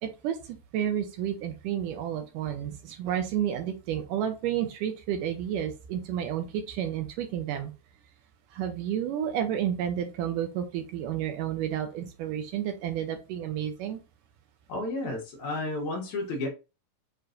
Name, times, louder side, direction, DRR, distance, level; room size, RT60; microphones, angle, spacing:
voice 1, 0.0-7.7 8.5-14.0, right 10 dB, 75° right, 6 dB, 2.1 m, -31 dB
voice 2, 14.7-16.5, left 2 dB, 65° left, 0 dB, 2.1 m, -32 dB
6.8 x 3.0 x 2.5 m, 0.29 s
omnidirectional pair, 4.2 m